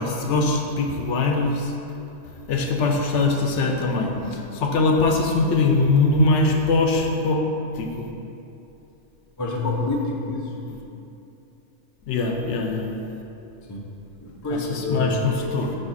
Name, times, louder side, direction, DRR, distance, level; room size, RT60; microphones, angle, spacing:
voice 1, 0.0-1.7 2.5-7.5 7.7-8.1 12.1-12.9 14.5-15.7, left 3 dB, 75° left, 2 dB, 1.0 m, -22 dB
voice 2, 9.4-10.5 13.7-13.9 14.2-15.3, left 2 dB, 20° left, -2 dB, 0.5 m, -27 dB
8.9 x 3.4 x 4.1 m, 2.8 s
omnidirectional pair, 1.3 m